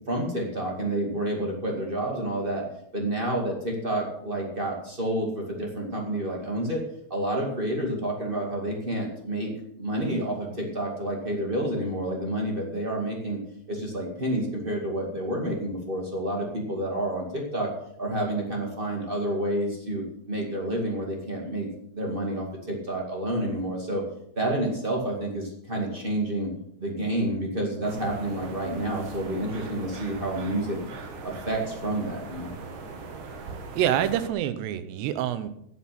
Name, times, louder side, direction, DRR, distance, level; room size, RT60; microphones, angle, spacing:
voice 1, 0.1-2.6 2.9-6.8 7.1-9.5 9.8-13.4 13.7-17.7 18.0-24.0 24.3-26.5 26.8-30.8 31.2-32.5, right 1 dB, 25° right, 0 dB, 1.1 m, -29 dB
sound 1, 27.8-34.3, right 4 dB, 60° right, 2.5 m, -40 dB
voice 2, 33.8-35.5, right 10 dB, 85° right, 12 dB, 3.0 m, -26 dB
10.5 x 9.9 x 5.9 m, 0.73 s
omnidirectional pair, 4.8 m